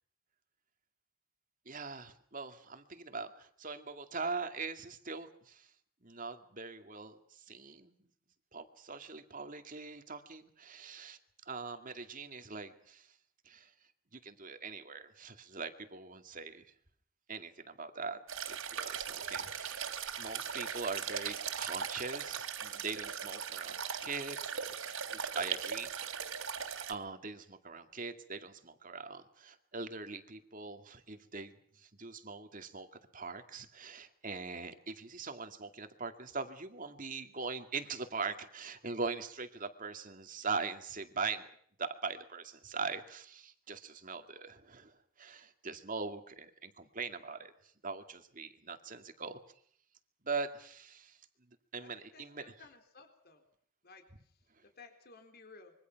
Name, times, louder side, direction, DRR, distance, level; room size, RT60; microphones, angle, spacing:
voice 1, 1.7-5.7 6.0-7.9 8.5-11.2 11.5-13.2 13.4-13.7 14.1-16.7 17.3-18.2 18.5-19.8 20.2-25.9 26.8-32.9 33.1-41.5 41.8-49.4 50.2-51.2 51.7-52.7, right 4 dB, 40° right, 7 dB, 2.2 m, -42 dB
sound 1, 18.3-26.9, right 7 dB, 70° right, 3.4 m, -39 dB
voice 2, 51.8-53.4 53.8-54.0 54.8-55.7, left 4 dB, 45° left, 5 dB, 3.9 m, -56 dB
26.0 x 23.5 x 6.0 m, 0.62 s
head